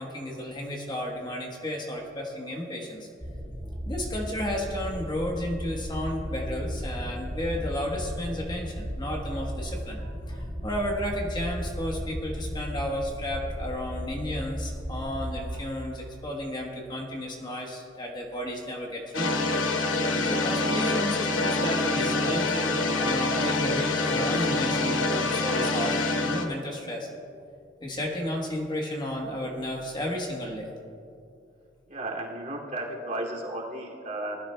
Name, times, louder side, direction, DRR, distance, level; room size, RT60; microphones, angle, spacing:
voice 1, 0.0-3.1 3.9-19.3 20.3-27.1 27.8-30.7, left 1 dB, 25° left, 0 dB, 1.2 m, -33 dB
sound 1, 3.2-15.6, equal, 5° right, 3.1 m, -35 dB
sound 2, 19.1-26.5, left 2 dB, 85° left, 1.0 m, -26 dB
voice 2, 31.9-34.4, right 1 dB, 45° right, -4 dB, 2.6 m, -34 dB
20.0 x 12.5 x 2.3 m, 2.6 s
head